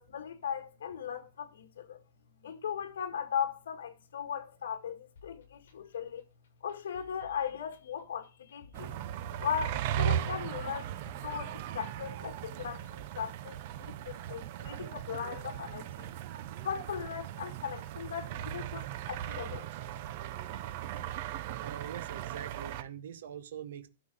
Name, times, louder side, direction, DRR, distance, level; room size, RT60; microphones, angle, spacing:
voice 1, 0.0-2.0 2.4-6.2 6.6-8.9 9.4-16.1 16.6-19.7, left 8 dB, 80° left, 1.7 m, -38 dB
sound 1, 5.2-13.4, left 6 dB, 50° left, 6.4 m, -58 dB
sound 2, 8.7-22.8, right 11 dB, 30° right, 0.5 m, -38 dB
voice 2, 21.6-23.9, right 8 dB, 55° right, 1.1 m, -43 dB
12.5 x 4.2 x 7.7 m
hypercardioid pair, 180°, 0 cm